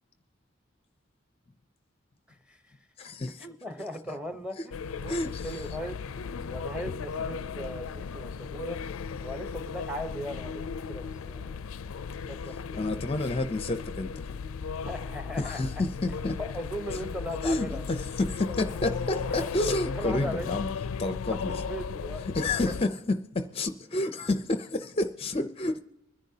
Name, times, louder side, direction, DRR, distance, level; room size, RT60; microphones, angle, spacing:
voice 1, 2.3-2.7 3.4-6.0 6.5-8.8 9.2-10.6 10.9-11.7 12.1-12.7 14.8-15.8 16.4-18.0 19.2-19.5 19.9-20.5 21.3-22.7, equal, 5° right, 0.9 m, -38 dB
voice 2, 3.0-3.5 4.6-4.7 5.1-5.7 12.7-14.3 15.4-16.4 16.9-17.0 17.4-20.7 21.0-21.5 22.3-25.8, left 2 dB, 30° left, 0.5 m, -30 dB
sound 1, 4.7-22.9, left 5 dB, 85° left, 0.4 m, -36 dB
24.5 x 10.5 x 2.8 m
head